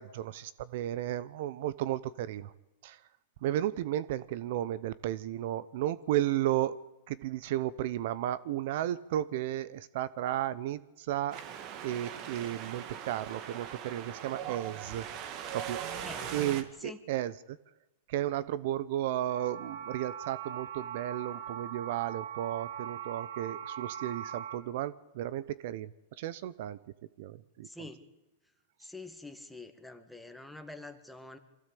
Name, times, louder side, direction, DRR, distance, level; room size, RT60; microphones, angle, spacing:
voice 1, 0.0-2.5 2.8-3.0 3.4-6.8 7.1-11.4 11.8-15.1 15.5-15.8 16.3-17.6 18.1-25.9 26.2-26.8 27.2-27.7, right 13 dB, 60° right, 19 dB, 0.8 m, -33 dB
Wind, 11.3-16.6, right 9 dB, 40° right, 2.1 m, -40 dB
voice 2, 16.0-16.5 16.8-17.0 27.6-28.0 28.8-31.4, left 2 dB, ahead, 7 dB, 2.0 m, -46 dB
sound 1, 19.3-24.6, right 9 dB, 85° right, 2.9 m, -41 dB
24.0 x 16.0 x 8.5 m, 1.0 s
hypercardioid pair, 135°, 0 cm